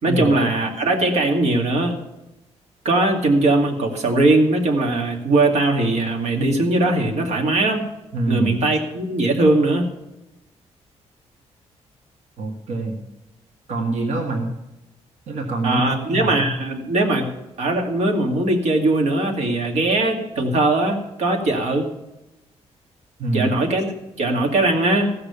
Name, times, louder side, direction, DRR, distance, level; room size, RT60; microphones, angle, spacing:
voice 1, 0.0-2.0 2.8-7.8 8.3-9.9 15.6-17.3 17.6-21.9 23.3-23.9 24.2-25.1, right 2 dB, 70° right, 2 dB, 2.2 m, -20 dB
voice 2, 8.1-8.5 12.4-13.0 13.7-14.5 15.3-16.5 23.2-23.5, right 2 dB, 90° right, 2 dB, 1.8 m, -25 dB
15.0 x 6.9 x 6.8 m, 0.96 s
cardioid pair, 145°, 12 cm